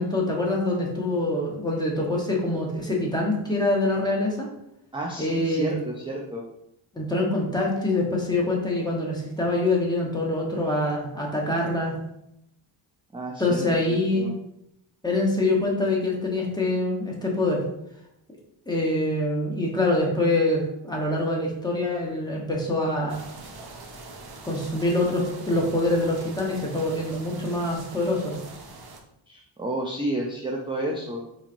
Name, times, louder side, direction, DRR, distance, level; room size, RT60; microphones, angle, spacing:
voice 1, 0.0-4.5 5.2-5.7 6.9-12.0 13.4-14.3 15.0-17.6 18.7-23.2 24.4-28.4, left 2 dB, 10° left, -2 dB, 0.9 m, -25 dB
voice 2, 4.9-6.4 13.1-14.3 29.3-31.2, right 1 dB, 10° right, -1 dB, 0.4 m, -31 dB
sound 1, 23.1-29.0, right 3 dB, 50° right, 0.6 m, -43 dB
3.9 x 3.0 x 2.5 m, 0.79 s
wide cardioid pair, 95°, 49 cm